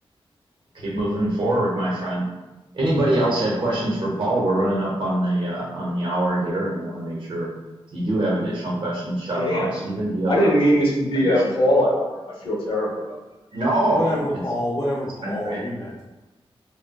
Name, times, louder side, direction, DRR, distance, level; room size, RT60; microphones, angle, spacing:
voice 1, 0.8-2.3 2.7-7.5 7.9-10.5 11.1-11.4 13.5-14.0 15.2-15.6, right 1 dB, 55° right, -5 dB, 0.7 m, -24 dB
voice 2, 9.4-9.7 10.3-13.2, equal, 60° left, -4 dB, 0.7 m, -21 dB
voice 3, 13.9-16.0, left 1 dB, 35° left, -5 dB, 0.4 m, -27 dB
3.9 x 2.1 x 2.2 m, 1.1 s
wide cardioid pair, 150°, 10 cm